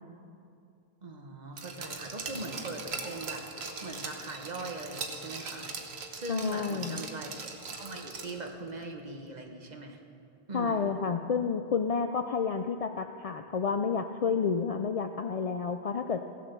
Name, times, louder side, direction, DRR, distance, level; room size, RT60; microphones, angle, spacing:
voice 1, 1.0-3.5 3.8-10.0 10.5-11.0, right 2 dB, 45° right, 3 dB, 1.2 m, -41 dB
Glass, 1.6-8.5 8.8-8.9, right 4 dB, 85° right, 1.3 m, -40 dB
voice 2, 6.3-7.0 10.5-16.2, left 5 dB, 50° left, 6 dB, 0.4 m, -30 dB
16.0 x 7.5 x 6.8 m, 2.6 s
omnidirectional pair, 1.0 m